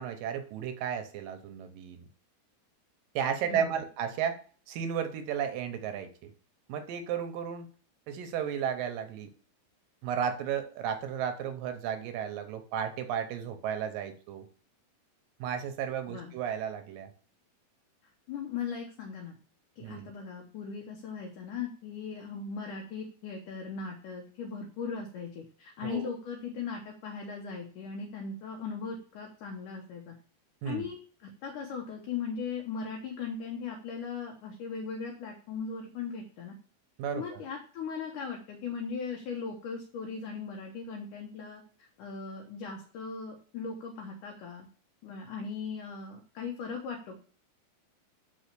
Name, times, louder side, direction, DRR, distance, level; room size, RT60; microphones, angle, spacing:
voice 1, 0.0-2.1 3.2-4.4 4.7-6.3 6.7-7.7 8.1-9.3 10.0-14.5 15.4-17.1 19.8-20.1 25.8-26.1 30.6-30.9 37.0-37.4, right 8 dB, 75° right, 8 dB, 2.2 m, -33 dB
voice 2, 3.4-3.8 16.1-16.3 18.3-19.4 19.8-30.2 30.6-36.6 37.1-44.7 45.0-47.2, left 5 dB, 65° left, 1 dB, 2.2 m, -38 dB
6.2 x 5.4 x 6.7 m, 0.42 s
omnidirectional pair, 4.5 m